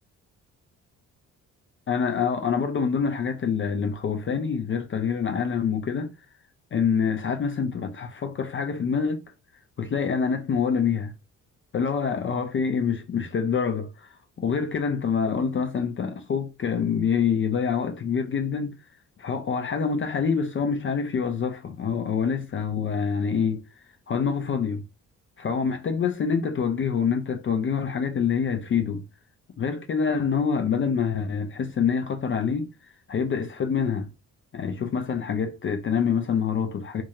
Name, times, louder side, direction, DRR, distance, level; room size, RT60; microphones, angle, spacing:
voice 1, 1.9-6.1 6.7-9.2 9.8-11.1 11.7-18.8 19.2-23.6 24.1-24.8 25.4-29.0 29.6-32.7 33.1-34.1 34.5-37.0, left 6 dB, 35° left, 0.4 m, -26 dB
2.2 x 2.1 x 2.8 m
supercardioid pair, 55°, 36 cm